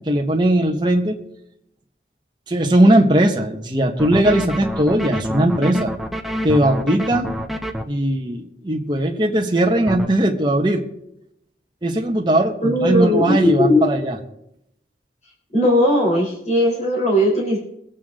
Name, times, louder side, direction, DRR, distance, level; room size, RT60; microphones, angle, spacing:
voice 1, 0.1-1.2 2.5-5.9 6.4-7.3 7.9-10.8 11.8-14.2, right 1 dB, 25° right, 1 dB, 1.5 m, -18 dB
sound 1, 4.0-7.8 9.9-10.1, equal, ahead, 0.8 m, -26 dB
voice 2, 12.6-13.9 15.5-17.6, left 1 dB, 40° left, -3 dB, 3.9 m, -18 dB
22.0 x 8.6 x 3.8 m, 0.78 s
head